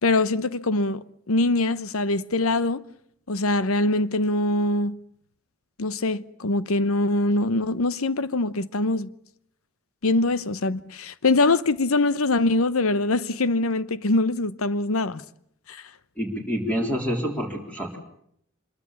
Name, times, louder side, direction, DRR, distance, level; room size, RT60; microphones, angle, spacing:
voice 1, 0.0-2.8 3.3-5.0 5.8-9.1 10.0-15.2 15.7-15.9, left 2 dB, 85° left, 0.9 m, -23 dB
voice 2, 16.2-18.0, equal, 10° left, 3.7 m, -27 dB
25.0 x 22.5 x 7.2 m
head